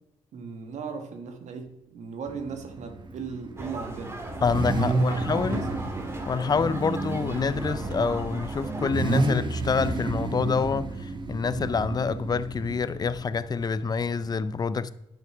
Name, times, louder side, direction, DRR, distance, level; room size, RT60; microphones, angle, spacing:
voice 1, 0.3-4.2 4.7-5.8, right 5 dB, 70° right, 1.4 m, -37 dB
Car / Idling / Accelerating revving vroom, 2.3-14.4, right 2 dB, 40° right, 1.0 m, -31 dB
sound 1, 3.6-8.9, right 1 dB, 20° right, 1.9 m, -38 dB
voice 2, 4.4-5.6 6.3-14.9, left 5 dB, 35° left, 0.5 m, -27 dB
10.5 x 6.0 x 6.1 m
cardioid pair, 100°, 12 cm